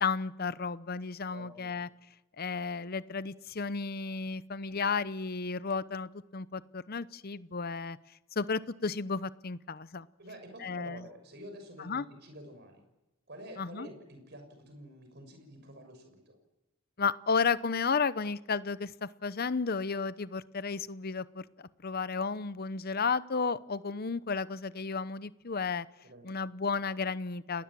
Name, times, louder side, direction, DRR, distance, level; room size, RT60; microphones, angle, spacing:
voice 1, 0.0-1.9 2.4-8.0 8.4-10.1 10.6-11.0 11.9-12.1 13.6-13.9 17.0-25.9 26.2-27.6, left 5 dB, 45° left, 16 dB, 0.8 m, -33 dB
voice 2, 1.3-1.8 10.2-12.8 13.3-16.4 26.0-26.3 27.5-27.6, right 1 dB, 50° right, 5 dB, 6.5 m, -49 dB
30.0 x 19.0 x 7.6 m, 0.97 s
head